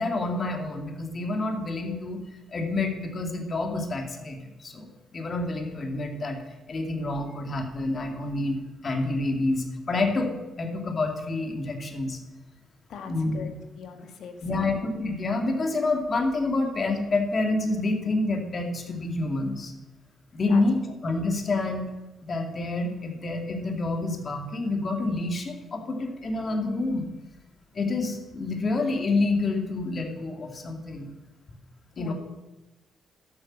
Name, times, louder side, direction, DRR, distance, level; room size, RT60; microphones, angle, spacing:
voice 1, 0.0-2.2 2.5-6.4 6.7-12.2 13.0-13.5 14.4-19.7 20.3-21.8 22.2-27.1 27.7-31.1 32.0-32.1, left 2 dB, 40° left, 3 dB, 2.3 m, -28 dB
voice 2, 12.9-13.5 13.8-14.7 20.5-20.6 32.0-32.1, left 7 dB, 70° left, 5 dB, 1.9 m, -40 dB
12.5 x 8.3 x 6.4 m, 1.1 s
cardioid pair, 90°, 0 cm